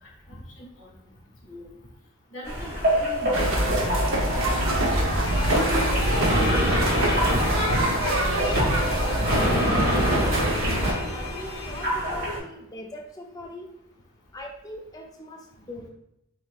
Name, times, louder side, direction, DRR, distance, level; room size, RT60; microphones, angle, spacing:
voice 1, 0.0-0.9 1.4-1.7 2.3-5.2 5.8-7.6, equal, 55° left, -2 dB, 1.5 m, -41 dB
sound 1, 2.4-12.4, equal, 45° right, 1.5 m, -26 dB
sound 2, 3.3-10.9, right 1 dB, 65° right, 0.8 m, -25 dB
sound 3, 5.2-11.9, left 6 dB, 70° left, 0.5 m, -39 dB
voice 2, 9.1-13.7 14.3-15.9, left 1 dB, 15° left, 2 dB, 0.4 m, -40 dB
6.6 x 2.9 x 2.3 m, 0.82 s
head